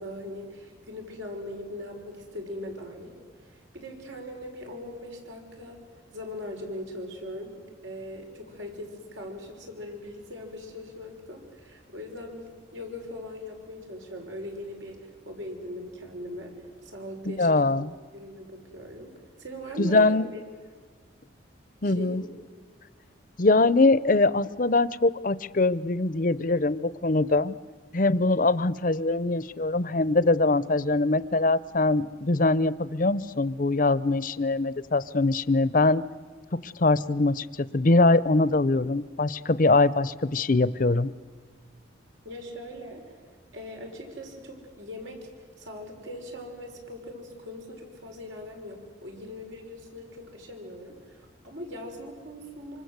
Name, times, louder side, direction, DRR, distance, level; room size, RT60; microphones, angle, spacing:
voice 1, 0.0-16.5 16.8-19.1 19.4-20.2 21.8-22.3 42.2-43.0 43.5-45.3 45.6-52.8, left 1 dB, 80° right, 2 dB, 6.1 m, -40 dB
voice 2, 17.3-17.9 19.8-20.3 21.8-22.2 23.4-27.6 27.9-36.0 36.5-41.1, left 2 dB, 45° left, 17 dB, 0.7 m, -23 dB
26.5 x 25.5 x 8.1 m, 1.5 s
head